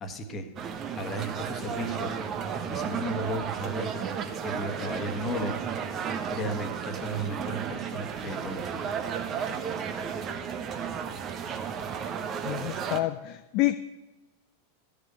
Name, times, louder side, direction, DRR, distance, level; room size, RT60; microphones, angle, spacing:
voice 1, 0.0-0.5 1.0-2.2 2.7-3.9 4.4-5.6 6.3-8.9, equal, 25° left, 6 dB, 1.6 m, -35 dB
sound 1, 0.6-13.0, right 7 dB, 30° right, 1.2 m, -33 dB
voice 2, 12.4-13.9, left 16 dB, 40° left, 9 dB, 0.5 m, -28 dB
13.5 x 6.6 x 9.5 m, 1.1 s
figure-of-eight pair, 90°, 0 cm